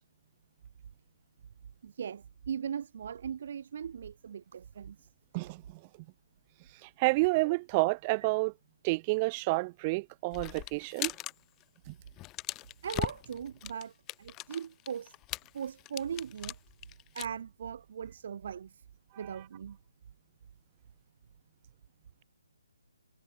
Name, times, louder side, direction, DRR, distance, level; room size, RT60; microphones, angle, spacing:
voice 1, 1.8-5.1 7.4-7.5 12.8-13.9 14.2-15.1 15.5-16.6 17.1-18.8 19.2-19.8, right 8 dB, 50° right, 2.6 m, -39 dB
voice 2, 5.3-5.8 6.8-8.5 8.8-11.1 11.9-12.0 19.2-19.4, right 26 dB, 25° right, 0.5 m, -29 dB
sound 1, 10.3-11.3 11.6-11.8 12.1-17.2, left 18 dB, 15° left, 1.5 m, -39 dB
hypercardioid pair, 160°, 0 cm